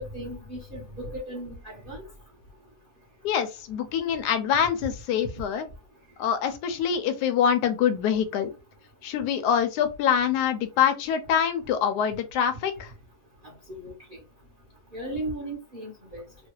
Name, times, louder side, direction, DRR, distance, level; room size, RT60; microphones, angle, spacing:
voice 1, 0.0-2.0 13.8-13.9 14.9-16.2, right 1 dB, 45° right, 0.7 m, -36 dB
voice 2, 3.2-5.7 6.2-8.5 9.0-12.9, left 8 dB, 70° left, 1.0 m, -25 dB
3.1 x 2.3 x 2.9 m
omnidirectional pair, 2.1 m